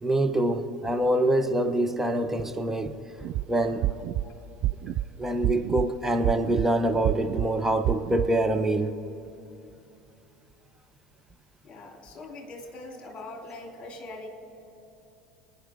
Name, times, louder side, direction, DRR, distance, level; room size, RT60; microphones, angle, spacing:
voice 1, 0.0-3.0 3.5-3.9 5.2-8.9, right 1 dB, 10° right, 6 dB, 1.0 m, -25 dB
sound 1, 3.2-3.4 3.8-4.2 4.6-5.0 5.4-5.9 6.2-6.7 7.0-7.5 7.8-8.3, right 14 dB, 45° right, 0.4 m, -27 dB
voice 2, 11.6-14.3, left 2 dB, 30° left, 2 dB, 3.0 m, -42 dB
27.0 x 9.8 x 3.8 m, 2.8 s
figure-of-eight pair, 70°, 3 cm